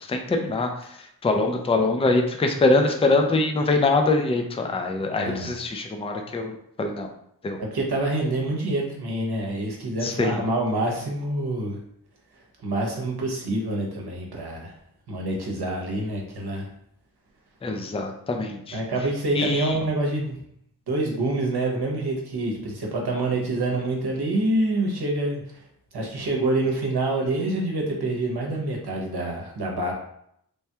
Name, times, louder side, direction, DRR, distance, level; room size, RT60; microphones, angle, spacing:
voice 1, 0.1-0.7 1.2-7.1 7.4-7.6 10.0-10.4 17.6-18.8 19.3-19.8, left 2 dB, 15° left, 4 dB, 0.3 m, -23 dB
voice 2, 5.2-5.5 7.6-11.8 12.6-14.7 15.1-16.7 18.7-20.3 20.9-25.4 25.9-29.9, right 2 dB, 75° right, -1 dB, 0.9 m, -26 dB
3.3 x 2.2 x 2.8 m, 0.73 s
wide cardioid pair, 70°, 39 cm